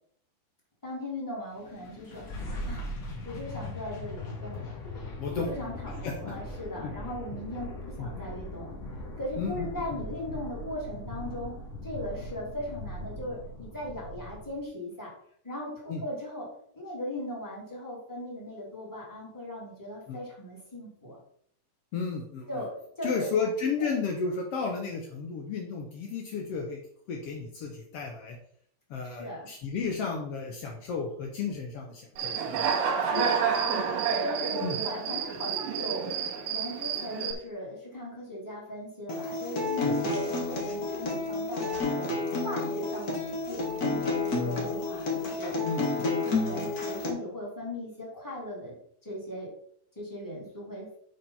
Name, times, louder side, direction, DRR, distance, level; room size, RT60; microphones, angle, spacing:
voice 1, 0.8-2.2 2.6-2.9 3.2-4.8 5.3-8.7 9.2-11.6 11.8-15.1 15.4-16.5 16.7-21.2 22.5-23.3 23.8-23.9 29.1-29.5 32.6-42.1 42.4-45.6 46.0-48.7 49.0-49.5 49.9-50.9, left 1 dB, 5° left, -5 dB, 2.2 m, -38 dB
sound 1, 1.5-14.6, left 1 dB, 50° left, 2.9 m, -40 dB
voice 2, 5.2-5.5 6.0-6.4 6.8-6.9 8.0-8.1 9.4-10.0 15.9-16.0 20.1-20.2 21.9-22.6 23.0-26.8 27.1-28.4 28.9-32.7 34.6-34.8 39.8-39.9 45.7-46.1, left 5 dB, 90° left, 1 dB, 1.3 m, -33 dB
Human voice / Cricket, 32.2-37.3, right 7 dB, 70° right, 2.5 m, -29 dB
Acoustic guitar, 39.1-47.1, left 3 dB, 70° left, 0.8 m, -30 dB
7.4 x 4.7 x 5.6 m, 0.67 s
omnidirectional pair, 4.2 m